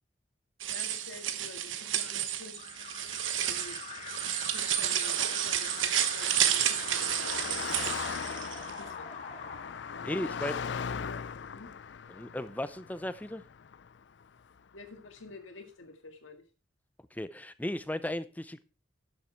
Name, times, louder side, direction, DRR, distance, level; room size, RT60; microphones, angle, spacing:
sound 1, 0.6-8.7, right 10 dB, 80° right, 1.0 m, -31 dB
voice 1, 0.7-2.6 3.4-3.8 4.5-9.2 9.9-11.7 14.7-16.4, left 3 dB, 90° left, 6 dB, 1.9 m, -49 dB
Alarm, 2.6-10.5, left 5 dB, 35° left, 1.7 m, -45 dB
Car passing by, 3.1-14.6, left 6 dB, 65° left, 0.4 m, -40 dB
voice 2, 10.0-10.6 12.1-13.4 17.1-18.6, left 1 dB, 10° left, 14 dB, 0.5 m, -35 dB
11.5 x 7.2 x 4.5 m, 0.35 s
head